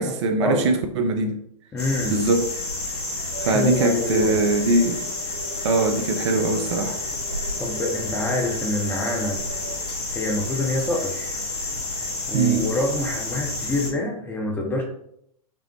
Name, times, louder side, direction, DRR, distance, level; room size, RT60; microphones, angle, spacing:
voice 1, 0.0-1.4 2.1-2.4 3.4-5.0 5.6-7.0 12.3-12.7, right 3 dB, 50° right, 5 dB, 0.5 m, -22 dB
voice 2, 1.7-2.3 3.4-4.4 7.6-9.4 10.1-11.3 12.3-14.8, left 2 dB, 10° left, 0 dB, 0.6 m, -26 dB
sound 1, 1.8-13.9, left 2 dB, 80° left, 1.2 m, -30 dB
sound 2, 3.3-9.8, right 1 dB, 65° right, 1.0 m, -39 dB
5.2 x 2.0 x 2.9 m, 0.73 s
figure-of-eight pair, 105°, 20 cm